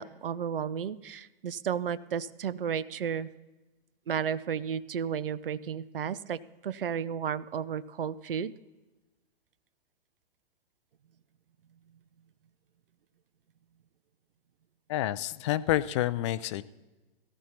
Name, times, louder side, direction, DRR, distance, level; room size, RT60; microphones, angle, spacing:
voice 1, 0.0-3.3 4.1-8.5, right 8 dB, 70° right, 16 dB, 0.6 m, -33 dB
voice 2, 14.9-16.6, left 14 dB, 30° left, 16 dB, 0.4 m, -28 dB
18.0 x 14.0 x 2.8 m, 1.1 s
figure-of-eight pair, 105°, 29 cm